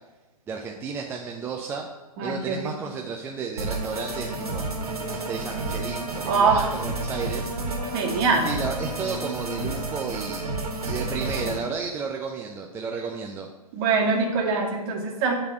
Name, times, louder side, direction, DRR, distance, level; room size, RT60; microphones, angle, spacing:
voice 1, 0.5-1.9 2.2-4.7 5.1-7.8 8.4-13.5, right 5 dB, 10° right, 1 dB, 0.5 m, -33 dB
voice 2, 2.2-2.7 6.2-6.7 7.9-8.5 13.7-15.3, right 4 dB, 35° right, 0 dB, 2.0 m, -23 dB
sound 1, 3.6-11.6, right 2 dB, 75° right, 2.0 m, -31 dB
10.0 x 4.0 x 7.6 m, 1.2 s
figure-of-eight pair, 120°, 20 cm